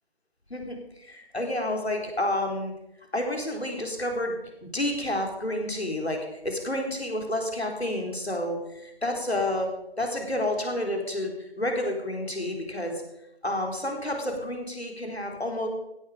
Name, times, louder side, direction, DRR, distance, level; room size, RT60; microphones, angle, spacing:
voice 1, 0.5-2.7 3.1-9.7 10.0-13.0 13.4-15.7, left 1 dB, 85° left, 2 dB, 4.1 m, -30 dB
16.0 x 12.0 x 5.1 m, 0.85 s
figure-of-eight pair, 165°, 31 cm